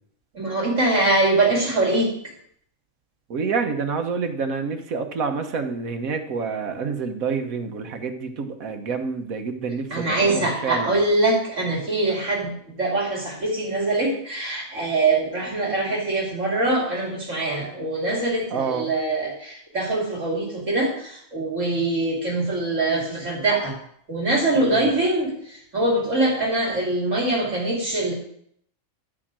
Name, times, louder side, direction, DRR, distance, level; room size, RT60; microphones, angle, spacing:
voice 1, 0.3-2.1 9.9-23.8 24.1-28.1, right 2 dB, 60° right, -2 dB, 3.0 m, -23 dB
voice 2, 3.3-10.9 18.5-18.9 24.5-24.9, right 5 dB, 80° right, 6 dB, 1.5 m, -28 dB
12.5 x 4.9 x 7.4 m, 0.66 s
omnidirectional pair, 1.4 m